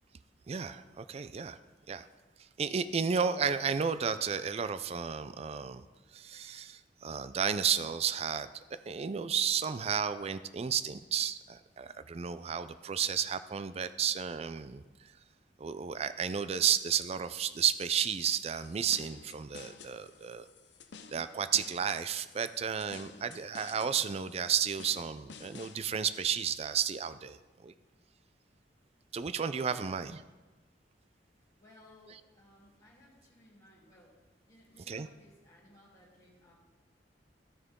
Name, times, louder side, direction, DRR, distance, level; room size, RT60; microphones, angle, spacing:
voice 1, 0.5-1.6 1.9-2.1 2.6-5.8 6.1-8.5 8.9-14.8 15.6-20.5 21.1-27.7 29.1-30.1 34.9-35.1, right 7 dB, 35° right, 13 dB, 0.4 m, -32 dB
sound 1, 17.8-25.8, left 5 dB, 70° left, 0.6 m, -53 dB
voice 2, 29.6-30.0 31.6-36.5, left 1 dB, 20° left, -7 dB, 2.9 m, -60 dB
14.5 x 6.7 x 3.7 m, 1.2 s
head